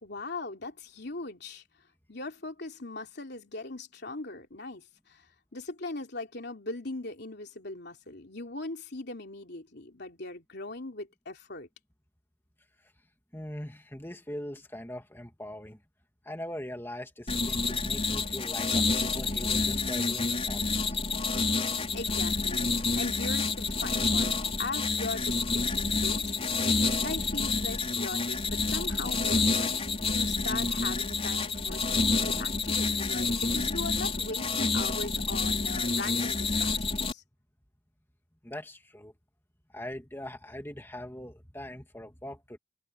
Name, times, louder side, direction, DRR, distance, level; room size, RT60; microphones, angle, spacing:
voice 1, 0.0-1.6 2.1-11.7 21.7-22.6 23.0-26.5 27.0-37.2, left 2 dB, 55° left, 3.2 m, -40 dB
voice 2, 13.3-15.8 16.2-21.0 38.4-39.1 39.7-42.6, left 1 dB, 10° left, 2.5 m, -41 dB
sound 1, 17.3-37.1, left 3 dB, 30° left, 4.6 m, -28 dB
head